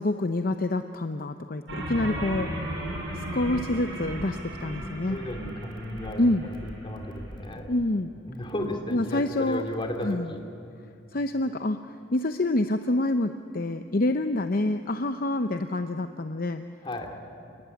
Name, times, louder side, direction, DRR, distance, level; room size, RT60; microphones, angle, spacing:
voice 1, 0.0-2.5 3.1-5.2 6.2-6.5 7.7-8.1 8.9-9.7 10.0-10.3 11.1-11.8 12.1-16.6, left 2 dB, 50° left, 8 dB, 0.7 m, -27 dB
sound 1, 1.7-7.4, right 1 dB, 70° right, 7.6 m, -35 dB
voice 2, 4.8-7.7 8.3-10.4 16.8-17.1, left 1 dB, 25° left, 4 dB, 2.9 m, -34 dB
28.5 x 19.5 x 9.7 m, 2.5 s
head